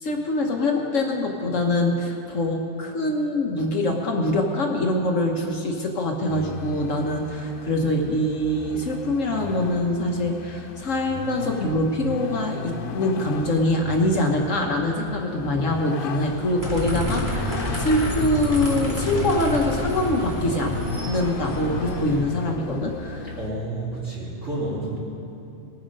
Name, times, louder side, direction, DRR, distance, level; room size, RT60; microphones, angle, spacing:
voice 1, 0.0-20.8 21.0-23.3, left 1 dB, 60° left, 1 dB, 1.4 m, -24 dB
Vehicle, 6.3-23.5, left 6 dB, 85° left, 0.4 m, -38 dB
sound 1, 16.6-22.2, equal, 10° right, 2.4 m, -28 dB
voice 2, 23.3-25.0, right 2 dB, 50° right, -9 dB, 3.3 m, -30 dB
20.0 x 7.2 x 5.3 m, 2.8 s
omnidirectional pair, 1.6 m